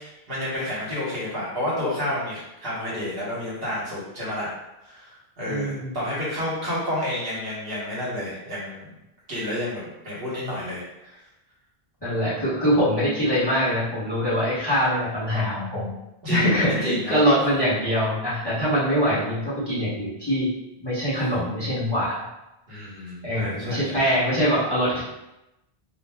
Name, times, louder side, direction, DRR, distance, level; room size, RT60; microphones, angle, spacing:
voice 1, 0.0-4.5 4.8-8.9 9.3-11.2 16.2-17.3 22.7-24.0, left 1 dB, 65° right, -7 dB, 1.2 m, -30 dB
voice 2, 5.4-6.0 12.0-15.9 16.3-20.5 20.8-22.1 23.2-25.0, equal, 25° left, -11 dB, 0.9 m, -23 dB
2.5 x 2.0 x 3.3 m, 0.93 s
omnidirectional pair, 1.1 m